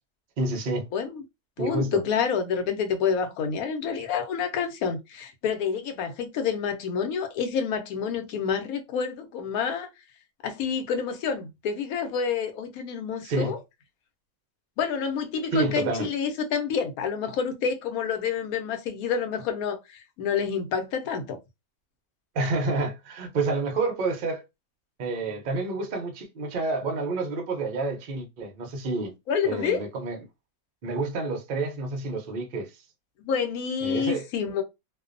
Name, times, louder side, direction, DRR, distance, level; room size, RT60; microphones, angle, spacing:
voice 1, 0.4-0.9 1.6-2.0 13.2-13.5 15.5-16.1 22.3-24.5 25.0-29.1 29.4-30.2 30.8-32.7 33.8-34.3, right 3 dB, 60° right, 0.5 m, -29 dB
voice 2, 0.9-1.2 1.6-9.9 10.4-13.6 14.8-21.4 29.3-29.8 33.2-34.6, left 6 dB, 70° left, 1.0 m, -28 dB
2.6 x 2.2 x 2.4 m
omnidirectional pair, 1.6 m